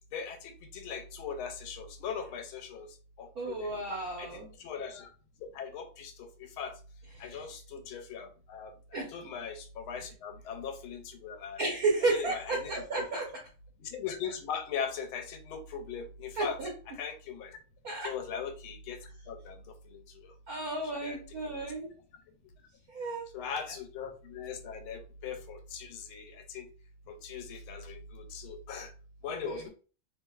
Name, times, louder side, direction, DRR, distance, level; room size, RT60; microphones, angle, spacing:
voice 1, 0.1-2.9 3.2-3.7 4.2-5.1 5.4-6.3 6.6-6.7 7.2-11.6 12.1-12.7 13.8-16.6 16.9-17.6 18.0-19.0 19.3-20.0 21.0-21.2 21.4-21.6 23.3-26.7 27.1-28.9 29.2-29.7, left 6 dB, 90° left, 1.5 m, -40 dB
voice 2, 3.3-4.5 7.1-7.5 8.9-9.1 11.6-13.3 16.3-16.7 17.8-18.1 20.5-21.9 22.9-23.2 29.4-29.7, right 3 dB, 55° right, 1.1 m, -32 dB
3.4 x 3.0 x 2.3 m
omnidirectional pair, 2.2 m